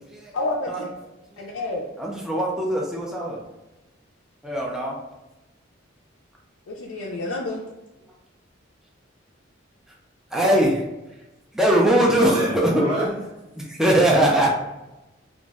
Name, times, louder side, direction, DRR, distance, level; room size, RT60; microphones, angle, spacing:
voice 1, 0.3-0.9 1.4-1.9 6.7-7.6, left 2 dB, 80° left, -3 dB, 0.4 m, -29 dB
voice 2, 2.0-3.4 4.4-5.0 10.3-10.8 11.5-12.8 13.6-14.5, right 1 dB, 5° right, -3 dB, 0.4 m, -21 dB
voice 3, 11.8-13.2 14.3-14.5, equal, 65° right, -13 dB, 1.1 m, -28 dB
2.5 x 2.0 x 3.4 m, 1.0 s
head